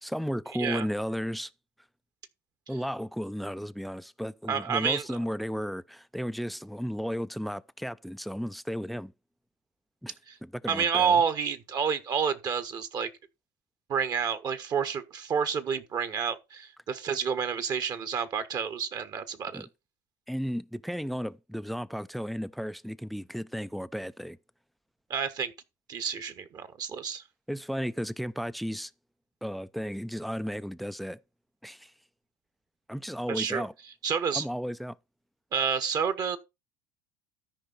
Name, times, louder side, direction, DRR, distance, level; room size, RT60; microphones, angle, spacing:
voice 1, 0.0-1.5 2.7-9.1 10.0-10.1 10.4-11.2 19.5-19.7 20.3-24.4 27.5-28.9 29.4-31.2 31.6-31.9 32.9-33.7 34.3-35.0, equal, ahead, 0.5 m, -34 dB
voice 2, 4.5-5.0 10.3-10.4 10.7-13.1 13.9-19.7 25.1-25.5 25.9-27.2 33.3-33.6 34.0-34.4 35.5-36.4, right 6 dB, 40° right, 1.3 m, -29 dB
13.0 x 5.2 x 4.1 m
hypercardioid pair, 80°, 10 cm